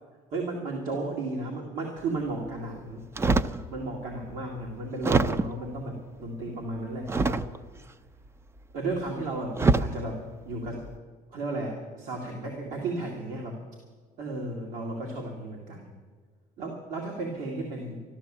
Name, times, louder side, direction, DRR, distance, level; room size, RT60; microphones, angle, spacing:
voice 1, 0.3-3.0 3.5-7.4 8.7-10.8 11.3-13.6 14.2-15.9 16.6-18.0, right 2 dB, 75° right, -1 dB, 2.2 m, -34 dB
sound 1, 3.2-3.6 4.3-4.4 5.0-5.7 7.1-7.8 8.9-9.1 9.5-10.0 10.7-11.0, right 3 dB, 20° right, 0.4 m, -24 dB
13.5 x 12.5 x 7.4 m, 1.5 s
cardioid pair, 115°, 14 cm